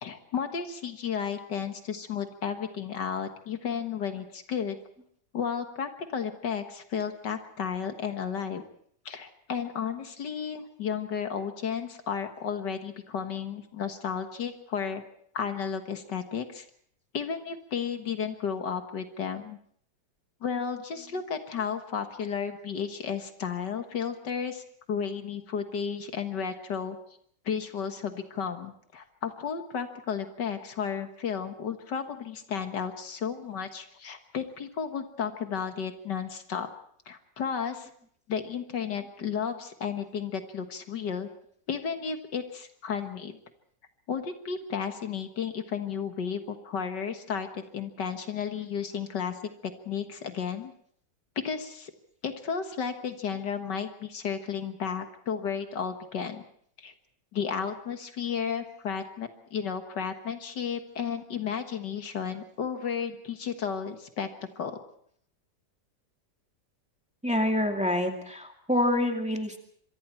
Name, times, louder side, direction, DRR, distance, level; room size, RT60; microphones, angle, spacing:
voice 1, 0.0-4.8 5.3-8.6 9.1-15.0 15.3-16.7 17.1-19.6 20.4-27.0 27.5-36.7 37.1-37.9 38.3-41.3 41.7-43.4 44.1-50.7 51.4-51.9 52.2-56.4 56.8-56.9 57.3-64.3 64.6-64.7, left 7 dB, 70° left, 7 dB, 2.1 m, -33 dB
voice 2, 67.2-69.6, left 1 dB, 5° right, 3 dB, 2.2 m, -26 dB
25.5 x 23.5 x 4.5 m, 0.63 s
omnidirectional pair, 1.9 m